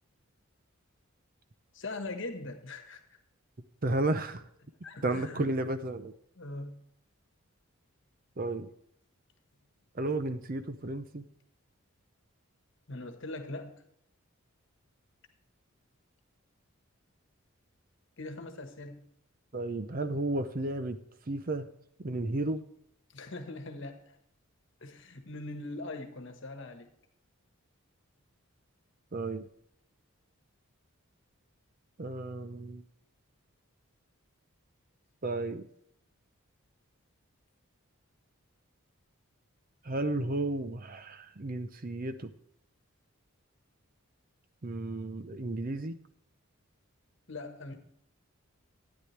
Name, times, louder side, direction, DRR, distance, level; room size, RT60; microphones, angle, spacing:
voice 1, 1.7-3.2 4.8-5.5 6.4-6.8 12.9-13.8 18.2-19.0 23.1-24.2 24.8-26.9 47.3-47.8, left 2 dB, 55° left, 7 dB, 1.3 m, -41 dB
voice 2, 3.8-4.5 5.0-6.1 8.4-8.7 9.9-11.3 19.5-21.0 21.3-21.7 22.0-22.6 29.1-29.5 32.0-32.8 35.2-35.7 39.8-42.3 44.6-46.0, right 2 dB, 40° right, 11 dB, 0.7 m, -33 dB
12.5 x 9.8 x 3.3 m, 0.72 s
head